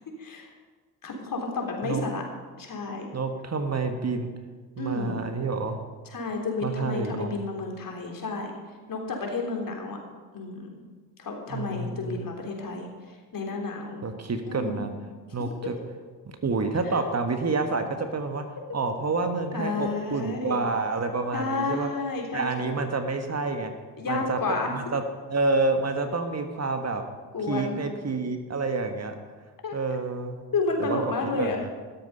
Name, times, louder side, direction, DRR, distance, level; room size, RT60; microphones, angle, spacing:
voice 1, 0.2-0.5 1.0-2.2 2.6-3.1 4.8-5.2 6.1-8.5 8.9-10.0 10.3-10.7 11.2-14.0 14.5-14.9 16.9-17.1 19.5-20.6 21.3-22.8 24.0-24.7 27.3-27.8 29.6-29.8 30.5-31.6, left 3 dB, 45° left, 1 dB, 3.5 m, -31 dB
voice 2, 3.1-4.3 4.8-5.8 6.6-7.3 11.5-12.3 14.0-14.9 15.3-15.7 16.4-18.4 18.7-21.9 22.3-23.7 24.1-24.4 24.7-25.0 25.3-27.0 27.5-29.1 29.7-30.4 30.8-31.7, right 3 dB, 35° right, 6 dB, 1.6 m, -28 dB
13.0 x 12.0 x 5.6 m, 1.4 s
hypercardioid pair, 45°, 45 cm